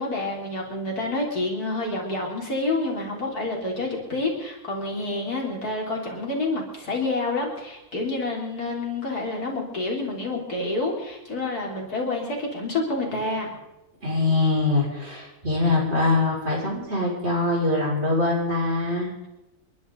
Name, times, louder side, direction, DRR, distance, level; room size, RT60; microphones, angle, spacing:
voice 1, 0.0-13.5, left 2 dB, 85° left, -1 dB, 4.2 m, -28 dB
voice 2, 14.0-19.1, left 2 dB, 45° right, -4 dB, 6.3 m, -23 dB
30.0 x 11.5 x 4.0 m, 0.97 s
omnidirectional pair, 1.6 m